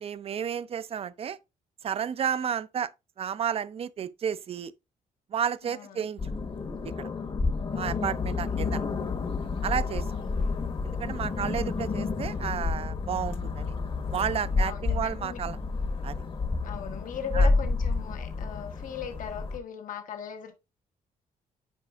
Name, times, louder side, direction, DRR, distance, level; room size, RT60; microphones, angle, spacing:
voice 1, 0.0-1.4 1.8-2.9 3.2-4.7 5.3-6.2 7.0-7.1 7.7-8.8 9.6-10.0 10.8-13.8 14.1-15.6 16.0-16.2 17.3-17.5, right 8 dB, 45° right, 0.5 m, -32 dB
voice 2, 5.7-6.1 7.7-8.7 10.2-10.6 14.5-15.4 16.6-20.5, left 8 dB, 65° left, 1.3 m, -39 dB
sound 1, 6.2-19.6, left 3 dB, 40° left, 1.1 m, -30 dB
9.0 x 5.3 x 2.4 m
cardioid pair, 120°, 14 cm